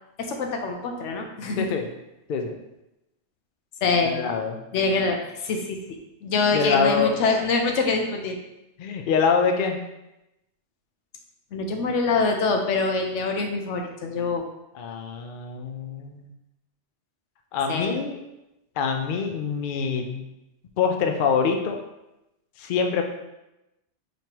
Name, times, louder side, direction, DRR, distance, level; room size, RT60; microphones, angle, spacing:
voice 1, 0.2-1.7 3.8-4.2 4.7-5.8 6.2-8.4 11.5-14.4 17.7-18.0, left 4 dB, 85° left, 3 dB, 1.0 m, -24 dB
voice 2, 1.6-1.9 2.3-2.5 4.0-4.6 6.5-7.1 8.8-9.8 14.7-16.3 17.5-18.2 18.8-20.2 20.8-21.8 22.6-23.0, left 6 dB, 55° left, 4 dB, 0.6 m, -25 dB
5.2 x 3.1 x 2.9 m, 0.92 s
omnidirectional pair, 1.2 m